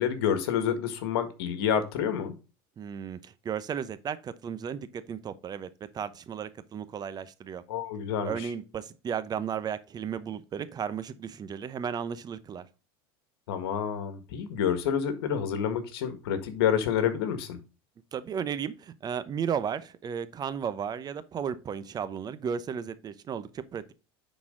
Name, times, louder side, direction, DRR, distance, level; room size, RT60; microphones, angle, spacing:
voice 1, 0.0-2.3 7.7-8.5 13.5-17.6, left 8 dB, 80° left, 1.6 m, -28 dB
voice 2, 2.8-7.6 8.2-12.7 18.1-23.8, right 7 dB, 30° right, 0.8 m, -34 dB
9.7 x 4.2 x 3.7 m
supercardioid pair, 110°, 13 cm